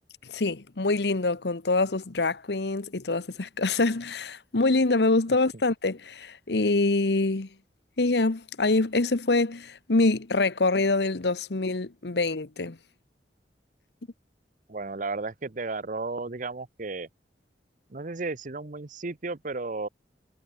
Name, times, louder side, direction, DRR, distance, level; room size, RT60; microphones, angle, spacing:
voice 1, 0.3-7.5 8.0-12.8, left 3 dB, 70° left, 1.1 m, -25 dB
voice 2, 14.7-17.1 17.9-19.9, right 3 dB, 45° right, 0.9 m, -33 dB
head